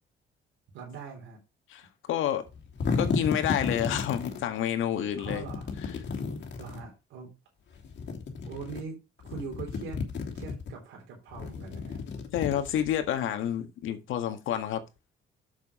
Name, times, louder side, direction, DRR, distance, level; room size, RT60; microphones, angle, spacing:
voice 1, 0.7-1.4 5.2-5.7 6.6-7.3 8.5-10.0 10.3-12.0, right 5 dB, 90° right, 3.6 m, -42 dB
voice 2, 1.7-2.5 3.0-5.4 12.3-14.8, left 10 dB, 85° left, 1.8 m, -29 dB
sound 1, 2.5-4.4 5.2-6.8 7.8-8.8 9.2-10.7 11.3-13.1, left 5 dB, 60° left, 2.9 m, -33 dB
7.3 x 7.1 x 4.9 m
cardioid pair, 90°, 20 cm